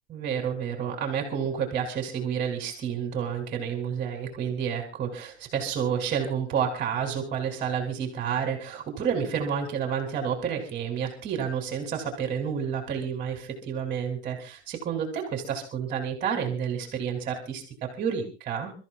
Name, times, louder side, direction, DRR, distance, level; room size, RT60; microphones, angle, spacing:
voice 1, 0.1-18.7, right 7 dB, 25° right, 2 dB, 3.5 m, -30 dB
29.5 x 14.0 x 2.5 m, 0.34 s
supercardioid pair, 155°, 33 cm